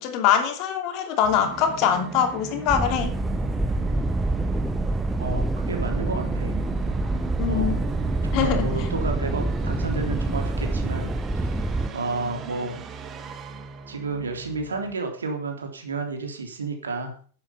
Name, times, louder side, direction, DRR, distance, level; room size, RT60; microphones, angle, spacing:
voice 1, 0.0-3.1 7.4-7.8 8.3-8.7, left 8 dB, 40° left, 6 dB, 2.8 m, -23 dB
Musical instrument, 1.2-14.9, right 7 dB, 25° right, 1.8 m, -37 dB
sound 1, 2.7-11.9, right 2 dB, 5° right, 0.8 m, -26 dB
voice 2, 5.2-6.5 7.5-7.8 8.2-11.1 11.4-11.5 11.9-12.8 13.9-17.1, right 3 dB, 70° right, 3 dB, 3.5 m, -31 dB
12.0 x 9.6 x 5.8 m, 0.43 s
figure-of-eight pair, 90°, 0 cm